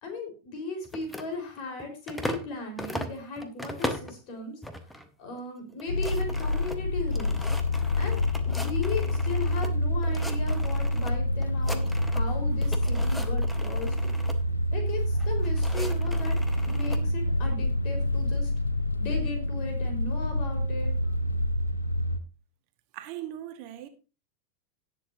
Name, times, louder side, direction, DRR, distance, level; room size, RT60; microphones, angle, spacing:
voice 1, 0.0-4.6 4.9-7.4 8.0-13.9 14.7-16.4 16.6-18.5 19.0-20.9, left 3 dB, 40° left, 4.4 m, -37 dB
sound 1, 0.8-2.5 2.8-4.2 4.6-5.1 5.4-5.5 5.7-9.7 10.0-11.1 11.4-12.3 12.6-14.4 15.2-17.0, left 1 dB, 5° left, 1.1 m, -39 dB
sound 2, 5.9-22.2, left 1 dB, 80° left, 0.7 m, -27 dB
voice 2, 22.9-23.9, right 12 dB, 45° right, 1.3 m, -39 dB
18.0 x 6.9 x 2.7 m
figure-of-eight pair, 90°, 0 cm